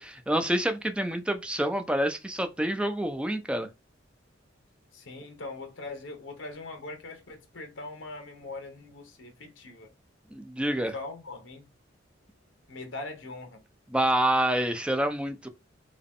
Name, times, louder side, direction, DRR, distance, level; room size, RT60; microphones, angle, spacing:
voice 1, 0.0-3.7 10.3-10.9 13.9-15.5, right 1 dB, 5° right, 0.4 m, -27 dB
voice 2, 4.9-9.9 10.8-11.7 12.7-13.6, left 2 dB, 70° left, 0.9 m, -41 dB
3.7 x 2.3 x 3.6 m
head